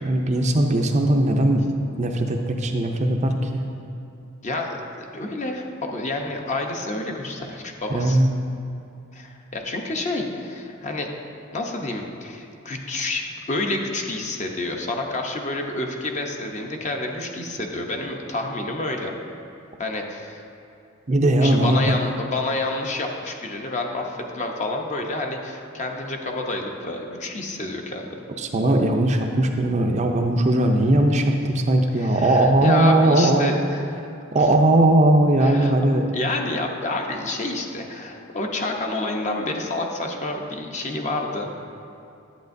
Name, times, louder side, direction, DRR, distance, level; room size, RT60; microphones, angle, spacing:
voice 1, 0.0-1.7 2.0-3.7 7.9-8.3 21.1-22.0 28.4-33.5 34.3-36.1, right 1 dB, 35° right, 3 dB, 0.5 m, -19 dB
voice 2, 4.4-8.2 9.1-11.1 11.5-19.1 19.8-20.4 21.4-28.1 32.0-33.9 35.4-35.7 36.1-41.5, left 2 dB, 35° left, 2 dB, 0.7 m, -29 dB
10.5 x 8.4 x 2.6 m, 2.7 s
head